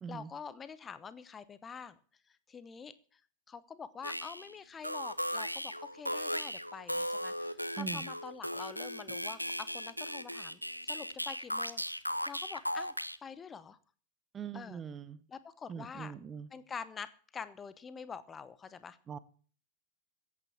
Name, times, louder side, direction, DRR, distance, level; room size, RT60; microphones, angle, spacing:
voice 1, 0.1-2.0 2.3-3.2 3.5-12.9 13.2-13.8 14.5-14.8 15.3-16.1 16.5-19.0, left 6 dB, 20° left, 15 dB, 1.0 m, -46 dB
sound 1, 4.0-4.5 4.8-13.2, equal, 90° left, 0.7 m, -37 dB
voice 2, 7.8-8.1 14.3-15.2 15.7-16.5 19.1-19.2, right 7 dB, 20° right, 16 dB, 0.9 m, -42 dB
15.5 x 8.7 x 7.3 m, 0.42 s
figure-of-eight pair, 90°, 0 cm